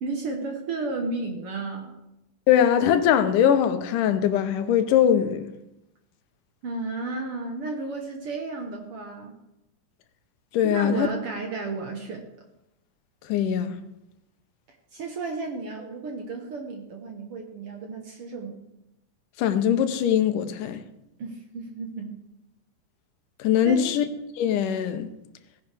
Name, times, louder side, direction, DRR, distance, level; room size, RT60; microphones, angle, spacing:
voice 1, 0.0-2.0 6.6-9.3 10.6-12.2 14.7-18.6 21.2-22.2 23.6-24.0, right 3 dB, 60° right, 1.7 m, -33 dB
voice 2, 2.5-5.5 10.5-11.1 13.3-13.8 19.4-20.8 23.4-24.1 24.4-25.1, left 9 dB, 80° left, 2.4 m, -21 dB
17.0 x 10.5 x 3.4 m
omnidirectional pair, 3.7 m